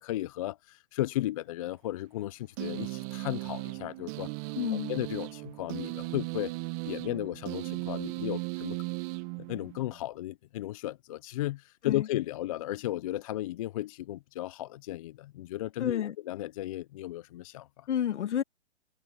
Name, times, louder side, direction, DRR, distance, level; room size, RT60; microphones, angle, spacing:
voice 1, 0.0-4.3 4.7-6.5 6.8-8.8 9.4-17.9, left 15 dB, 30° left, 0.5 m, -35 dB
sound 1, 2.6-10.0, right 25 dB, 30° right, 1.1 m, -37 dB
voice 2, 4.6-4.9 11.8-12.1 15.8-16.2 17.9-18.4, left 9 dB, 65° left, 2.1 m, -30 dB
hypercardioid pair, 135°, 37 cm